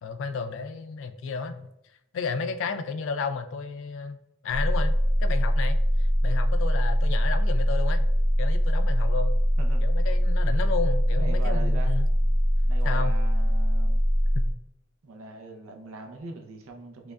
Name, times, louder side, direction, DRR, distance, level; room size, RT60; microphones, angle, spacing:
voice 1, 0.0-1.7 2.1-4.2 4.4-4.9 5.2-8.1 8.4-9.3 9.8-12.1 12.8-13.1 14.3-14.5, left 5 dB, 60° left, 9 dB, 0.3 m, -32 dB
sound 1, 4.5-14.5, equal, 5° left, 0.6 m, -22 dB
voice 2, 11.1-11.9 12.6-14.0 15.0-17.1, right 3 dB, 85° right, 3 dB, 0.6 m, -40 dB
4.8 x 2.2 x 2.3 m, 0.83 s
head